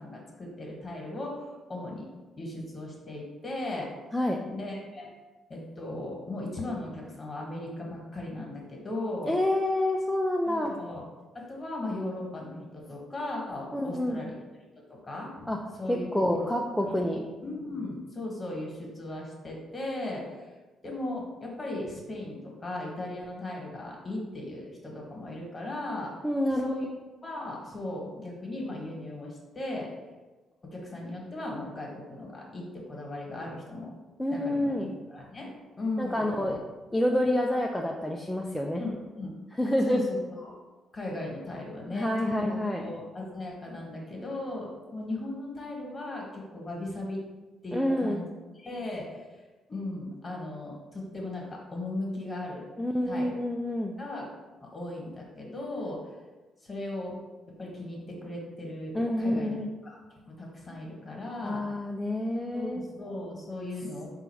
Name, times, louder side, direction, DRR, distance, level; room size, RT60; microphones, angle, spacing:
voice 1, 0.0-2.1 2.4-3.9 4.5-5.1 5.5-9.3 10.4-11.0 11.3-14.4 14.9-15.4 15.8-16.5 17.0-17.1 17.4-20.5 20.8-26.1 26.6-26.9 27.2-29.9 30.6-33.9 34.3-36.6 38.8-39.3 39.9-40.5 40.9-42.1 42.4-47.2 47.6-48.3 48.5-49.4 49.7-52.7 53.1-53.3 54.0-54.3 54.6-56.1 56.6-57.2 57.6-61.6 62.5-64.1, left 2 dB, 30° left, -2 dB, 1.2 m, -37 dB
voice 2, 9.3-10.7 13.7-14.2 15.5-15.6 15.9-17.2 26.2-26.8 34.2-35.0 36.0-36.6 36.9-38.8 39.6-40.0 41.9-42.8 47.7-48.2 52.8-53.9 58.9-59.7 61.4-62.8, left 1 dB, 5° left, 0 dB, 0.3 m, -28 dB
3.9 x 2.4 x 4.5 m, 1.2 s
cardioid pair, 90°, 0 cm